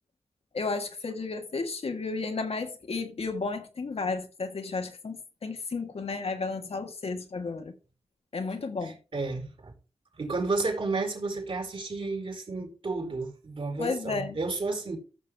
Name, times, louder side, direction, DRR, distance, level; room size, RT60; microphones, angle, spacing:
voice 1, 0.5-7.7 8.3-9.0 13.8-14.4, left 4 dB, 70° left, 1.7 m, -33 dB
voice 2, 8.8-9.7 10.2-15.0, right 3 dB, 55° right, 4.4 m, -32 dB
14.5 x 6.5 x 3.5 m
cardioid pair, 65°, 11 cm